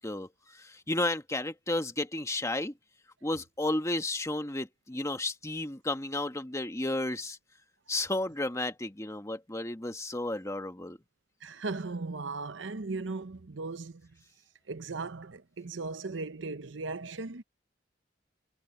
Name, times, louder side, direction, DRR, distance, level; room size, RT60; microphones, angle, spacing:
voice 1, 0.0-2.7 3.2-7.4 7.9-11.0, left 2 dB, 15° left, 1.5 m, -33 dB
voice 2, 11.4-14.1 14.7-17.4, right 3 dB, 75° right, 0.8 m, -37 dB
head